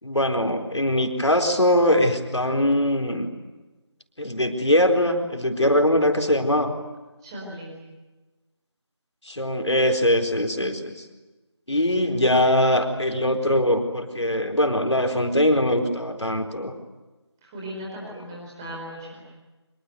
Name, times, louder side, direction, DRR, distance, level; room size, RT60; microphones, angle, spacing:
voice 1, 0.0-3.3 4.2-6.7 9.3-11.0 11.7-16.7, left 1 dB, 75° left, 4 dB, 4.3 m, -22 dB
voice 2, 7.2-7.7 17.4-19.2, equal, 10° right, -3 dB, 4.4 m, -37 dB
25.0 x 23.5 x 9.3 m, 1.2 s
figure-of-eight pair, 170°, 15 cm